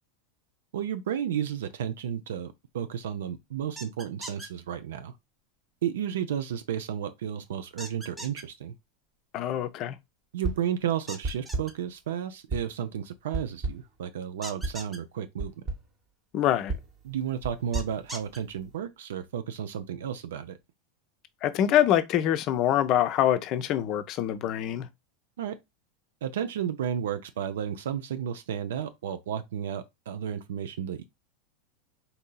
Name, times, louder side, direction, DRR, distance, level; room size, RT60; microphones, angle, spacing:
voice 1, 0.7-5.1 5.8-8.7 10.3-15.5 17.0-20.6 25.4-25.6 26.2-31.0, right 9 dB, 75° right, 0.3 m, -32 dB
sound 1, 3.8-4.5 7.8-8.4 11.1-11.7 14.4-15.0 17.7-18.4, right 1 dB, 10° right, 0.8 m, -40 dB
voice 2, 9.3-10.0 16.3-16.7 21.4-24.9, left 11 dB, 50° left, 0.5 m, -25 dB
sound 2, 10.4-10.8 11.2-11.9 12.5-12.9 13.3-14.0 14.6-14.9 15.4-15.9 16.7-18.8, right 3 dB, 35° right, 0.9 m, -35 dB
3.9 x 2.7 x 2.2 m
hypercardioid pair, 95°, 0 cm